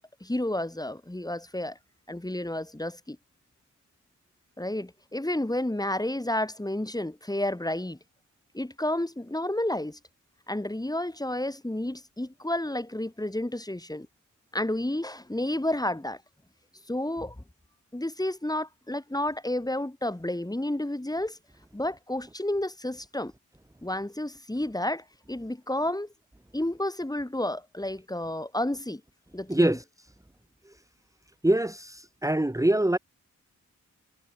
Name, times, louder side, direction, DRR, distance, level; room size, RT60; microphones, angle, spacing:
voice 1, 0.2-1.8 2.1-3.2 4.6-8.0 8.5-10.0 10.5-14.1 14.5-16.2 16.9-17.4 17.9-21.4 21.7-23.3 23.8-26.1 26.5-29.0 29.3-29.8, left 1 dB, 10° left, 4.9 m, -31 dB
voice 2, 29.5-29.8 31.4-33.0, right 1 dB, 10° right, 2.6 m, -24 dB
cardioid pair, 65°, 31 cm